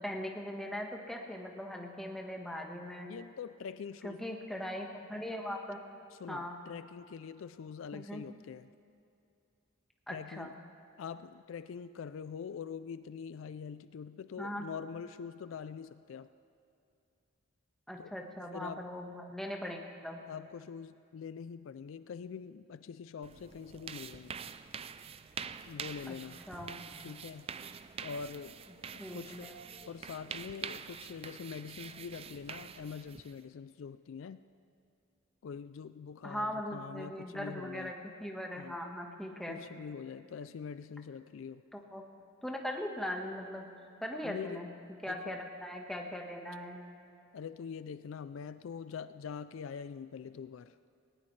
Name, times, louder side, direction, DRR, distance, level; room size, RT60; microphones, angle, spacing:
voice 1, 0.0-3.1 4.0-5.8 6.3-6.6 7.9-8.2 10.1-10.5 14.4-14.7 17.9-20.2 26.1-26.2 26.5-26.8 29.0-29.6 36.2-39.6 41.7-42.0 42.4-43.6 44.0-44.7 45.0-46.8, left 1 dB, ahead, 1 dB, 1.3 m, -40 dB
voice 2, 3.1-4.2 6.2-8.7 10.1-10.5 11.0-16.3 18.0-18.1 18.5-18.9 20.3-24.3 25.7-26.4 27.0-27.5 28.0-28.5 28.9-29.5 29.9-34.4 35.4-37.9 38.5-38.8 39.5-41.6 44.2-44.6 45.1-45.4 47.3-50.7, left 6 dB, 65° left, 13 dB, 0.4 m, -44 dB
sound 1, 23.2-33.4, right 7 dB, 30° right, 0.3 m, -46 dB
18.5 x 18.5 x 3.2 m, 2.6 s
head